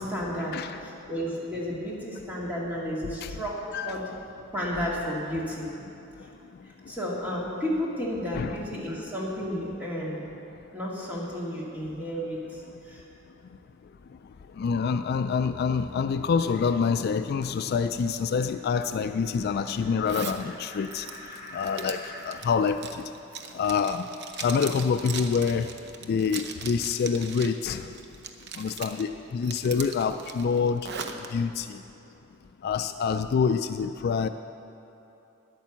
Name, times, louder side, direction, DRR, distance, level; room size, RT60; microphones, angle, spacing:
voice 1, 0.0-4.1 4.5-5.7 6.9-10.3 10.7-13.1, equal, 10° right, -5 dB, 2.1 m, -32 dB
voice 2, 14.6-21.1 21.5-22.8 23.5-24.0 24.4-25.7 26.1-27.9 28.6-30.8 31.3-31.8 32.6-34.3, left 6 dB, 55° left, 9 dB, 0.3 m, -26 dB
sound 1, 16.4-22.3, left 1 dB, 35° left, 3.1 m, -48 dB
Zipper (clothing), 20.0-20.4 20.8-27.6 27.9-29.0 29.4-31.3, right 6 dB, 60° right, 0.7 m, -39 dB
10.0 x 9.0 x 7.1 m, 2.9 s
head